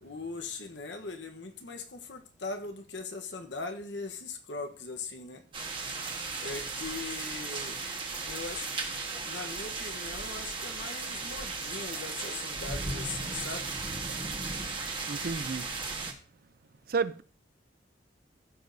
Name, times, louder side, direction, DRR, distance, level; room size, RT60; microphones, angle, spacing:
voice 1, 0.0-5.4 6.4-7.8 8.2-8.7 9.2-13.7, left 4 dB, 75° left, 1.1 m, -40 dB
sound 1, 5.5-16.1, right 3 dB, 30° right, 1.5 m, -36 dB
voice 2, 15.1-15.7 16.9-17.2, right 5 dB, 55° right, 0.5 m, -31 dB
15.0 x 6.3 x 2.7 m
head